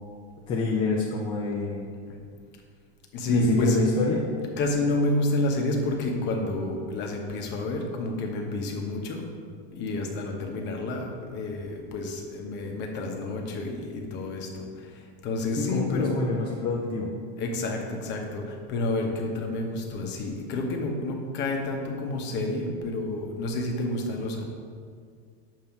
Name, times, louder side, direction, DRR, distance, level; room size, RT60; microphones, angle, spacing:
voice 1, 0.5-1.9 3.3-4.2 15.6-17.1, left 3 dB, 15° left, -3 dB, 0.4 m, -27 dB
voice 2, 3.1-3.8 4.6-9.2 9.7-16.1 17.4-24.4, left 2 dB, 35° left, 2 dB, 0.8 m, -29 dB
7.1 x 2.7 x 5.8 m, 2.1 s
supercardioid pair, 155°, 32 cm